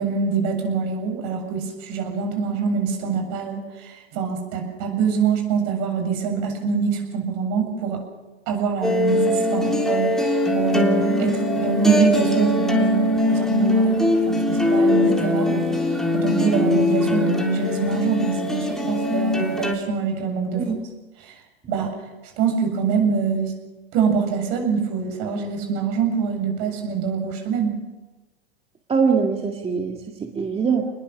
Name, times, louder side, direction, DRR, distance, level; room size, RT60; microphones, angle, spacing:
voice 1, 0.0-8.0 8.5-15.7 16.1-20.7 21.2-21.4 21.7-21.9 22.4-23.5 23.9-27.7, right 6 dB, 50° right, 4 dB, 7.5 m, -24 dB
sound 1, 8.8-19.7, left 2 dB, ahead, 3.5 m, -21 dB
voice 2, 28.9-30.9, right 5 dB, 15° right, 2 dB, 2.0 m, -23 dB
27.5 x 21.0 x 6.4 m, 1.1 s
hypercardioid pair, 100°, 33 cm